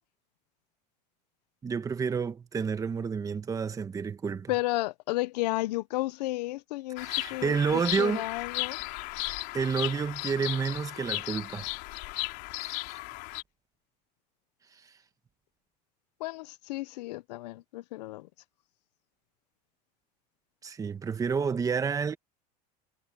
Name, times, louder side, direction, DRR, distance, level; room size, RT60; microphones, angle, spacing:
voice 1, 1.6-4.5 7.0-8.2 9.5-11.7 12.6-13.0 20.6-22.2, right 5 dB, 15° right, 1.4 m, -30 dB
voice 2, 4.5-8.8 16.2-18.3, left 19 dB, 80° left, 0.7 m, -33 dB
Bird vocalization bird call bird song, 7.0-13.4, left 23 dB, 55° left, 3.3 m, -35 dB
supercardioid pair, 140°, 21 cm